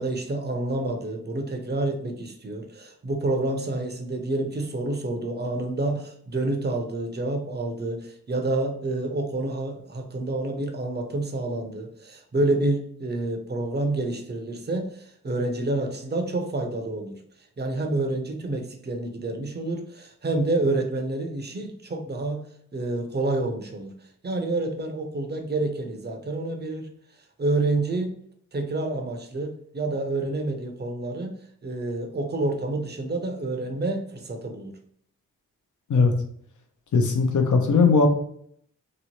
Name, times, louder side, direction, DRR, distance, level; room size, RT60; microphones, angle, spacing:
voice 1, 0.0-17.1 17.6-22.4 22.7-23.9 24.2-26.9 27.4-28.1 28.5-31.3 31.6-34.7, right 2 dB, 30° right, 4 dB, 0.7 m, -28 dB
voice 2, 36.9-38.1, left 4 dB, 55° left, 5 dB, 0.7 m, -19 dB
2.9 x 2.0 x 2.9 m, 0.64 s
supercardioid pair, 40°, 36 cm